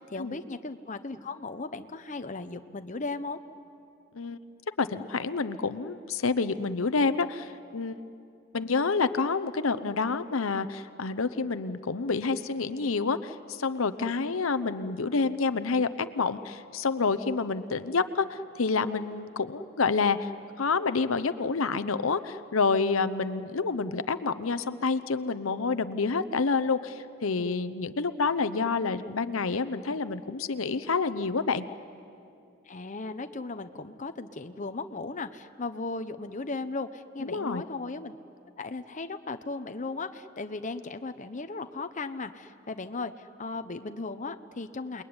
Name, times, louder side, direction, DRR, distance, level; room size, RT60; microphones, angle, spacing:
voice 1, 0.0-3.4 32.7-38.2 38.6-45.0, left 3 dB, 40° left, 9 dB, 0.8 m, -36 dB
voice 2, 4.8-8.0 8.5-20.3 20.6-31.6 37.2-37.6, left 4 dB, 80° left, 13 dB, 0.8 m, -28 dB
28.0 x 21.5 x 9.7 m, 2.6 s
head